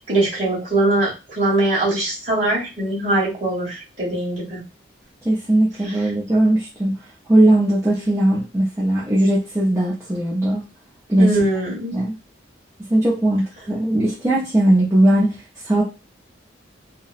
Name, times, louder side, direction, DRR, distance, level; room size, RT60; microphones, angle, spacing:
voice 1, 0.1-4.6 11.2-12.0, right 1 dB, 35° right, -7 dB, 1.5 m, -21 dB
voice 2, 5.2-6.9 7.3-10.6 11.1-11.3 11.9-12.2 12.9-15.4 15.6-15.8, right 1 dB, 15° right, -7 dB, 0.5 m, -18 dB
2.8 x 2.0 x 2.4 m, 0.30 s
head